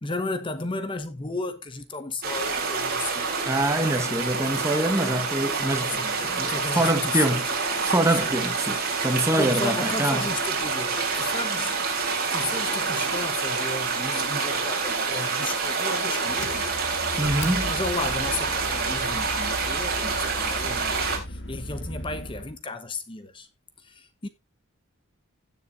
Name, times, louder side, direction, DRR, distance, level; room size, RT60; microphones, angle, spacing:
voice 1, 0.0-3.3 5.8-7.9 8.2-8.4 9.3-11.8 12.1-16.7 17.6-23.5 23.8-24.3, left 3 dB, 25° left, 0.9 m, -34 dB
sound 1, 2.2-21.2, right 4 dB, 45° right, 3.5 m, -27 dB
voice 2, 3.5-7.5 7.8-10.3 17.2-17.7, right 1 dB, 15° right, 1.2 m, -25 dB
Engine, 16.3-22.6, left 1 dB, 60° left, 2.1 m, -37 dB
17.0 x 7.0 x 2.5 m
head